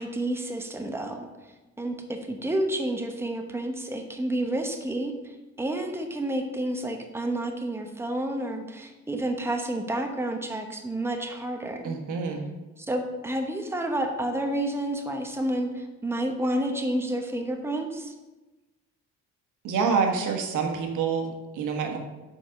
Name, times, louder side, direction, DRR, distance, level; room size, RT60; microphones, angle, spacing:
voice 1, 0.0-1.5 1.8-12.0 12.8-18.1, right 1 dB, 10° right, 4 dB, 0.9 m, -30 dB
voice 2, 11.8-12.4 19.6-22.0, right 5 dB, 85° right, 3 dB, 1.3 m, -27 dB
7.0 x 4.9 x 5.1 m, 1.1 s
cardioid pair, 90°, 30 cm